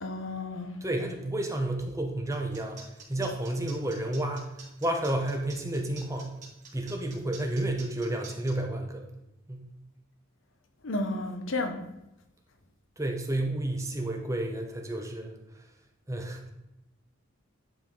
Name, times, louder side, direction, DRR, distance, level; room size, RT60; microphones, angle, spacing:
voice 1, 0.0-0.8 10.8-11.8, left 2 dB, 65° left, 0.8 m, -32 dB
voice 2, 0.8-6.3 6.7-9.1 9.5-9.7 13.0-15.6 16.1-16.5, right 1 dB, 15° right, 0.8 m, -31 dB
sound 1, 2.3-8.5, right 5 dB, 35° right, 2.5 m, -48 dB
10.0 x 4.7 x 3.8 m
head